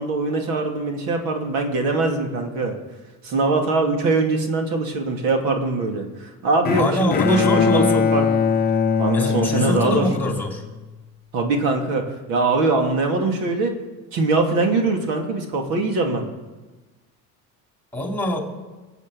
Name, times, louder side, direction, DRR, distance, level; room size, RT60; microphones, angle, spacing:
voice 1, 0.0-2.7 3.2-8.3 9.0-10.1 11.3-13.8 14.1-16.2, right 3 dB, 80° right, 3 dB, 2.8 m, -22 dB
Bowed string instrument, 6.6-10.9, left 6 dB, 25° left, 0.7 m, -21 dB
voice 2, 6.7-8.1 9.1-10.6 17.9-18.4, left 1 dB, 5° left, 2 dB, 2.7 m, -24 dB
22.0 x 8.1 x 7.2 m, 1.2 s
cardioid pair, 130°, 35 cm